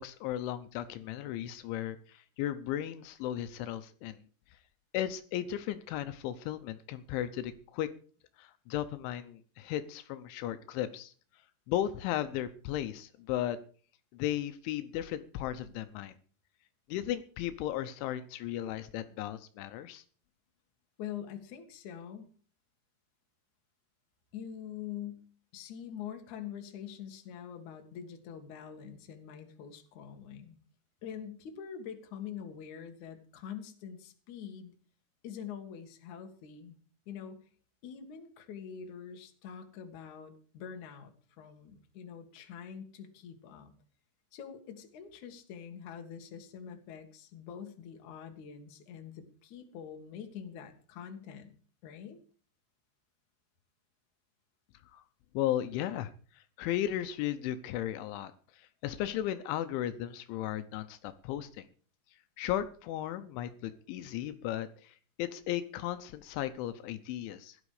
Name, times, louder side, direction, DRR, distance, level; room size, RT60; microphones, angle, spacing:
voice 1, 0.0-4.3 4.5-4.6 4.9-7.9 8.4-11.1 11.7-13.6 14.1-16.1 16.9-20.0 54.9-55.0 55.3-61.7 62.4-67.6, left 12 dB, 80° left, 11 dB, 3.2 m, -35 dB
voice 2, 21.0-22.2 24.3-25.3 25.5-30.6 31.0-34.7 35.2-36.8 37.1-37.4 37.8-43.7 44.3-51.5 51.8-52.2, left 8 dB, 50° left, 5 dB, 2.6 m, -45 dB
16.5 x 12.0 x 4.9 m, 0.43 s
omnidirectional pair, 5.5 m